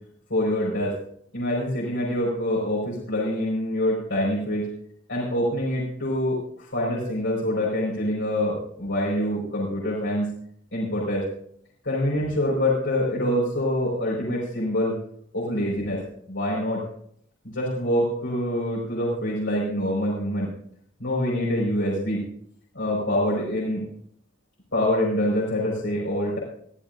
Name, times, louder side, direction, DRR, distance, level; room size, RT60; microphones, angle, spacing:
voice 1, 0.3-0.9 1.3-4.7 5.1-10.3 10.7-11.2 11.8-15.0 15.3-16.0 16.3-16.8 17.4-20.5 21.0-22.2 22.7-23.9 24.7-26.4, left 1 dB, 80° left, -6 dB, 5.0 m, -25 dB
23.5 x 14.5 x 2.6 m, 0.66 s
head